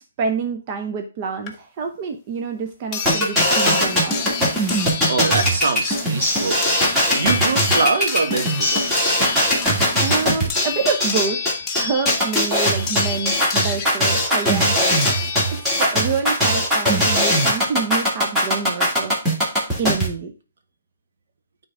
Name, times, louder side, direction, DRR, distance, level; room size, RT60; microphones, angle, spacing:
voice 1, 0.2-4.2 10.0-11.4 11.7-15.0 15.6-19.1 19.8-20.3, right 5 dB, 30° right, 4 dB, 0.9 m, -27 dB
sound 1, 1.5-1.6 2.9-15.9 17.2-17.3 17.6-17.7, left 6 dB, 15° left, 1.2 m, -29 dB
sound 2, 3.1-20.1, equal, 5° right, 2.3 m, -20 dB
voice 2, 5.1-9.2, right 4 dB, 65° right, 6 dB, 1.6 m, -24 dB
9.4 x 3.9 x 3.6 m, 0.33 s
hypercardioid pair, 160°, 0 cm